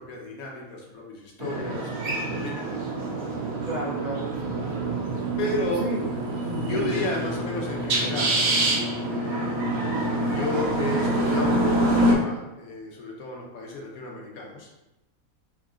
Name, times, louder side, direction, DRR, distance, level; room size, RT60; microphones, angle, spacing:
voice 1, 0.0-2.9 5.4-5.8 6.6-9.7 10.3-14.7, left 2 dB, 80° left, -1 dB, 1.3 m, -33 dB
sound 1, 1.4-12.2, right 1 dB, 90° right, 1.2 m, -26 dB
voice 2, 3.7-4.6 5.8-6.0 6.5-6.9, right 2 dB, 60° right, -5 dB, 0.4 m, -32 dB
3.9 x 2.4 x 3.6 m, 0.97 s
omnidirectional pair, 1.5 m